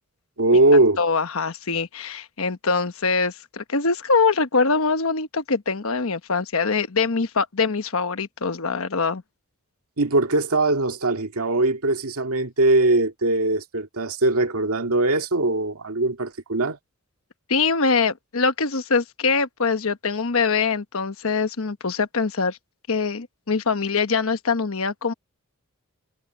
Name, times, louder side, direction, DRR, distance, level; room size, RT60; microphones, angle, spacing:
voice 1, 0.4-1.0 10.0-16.8, right 2 dB, 80° right, 2.0 m, -21 dB
voice 2, 1.0-9.2 17.5-22.6 22.9-25.1, left 4 dB, 70° left, 1.1 m, -23 dB
head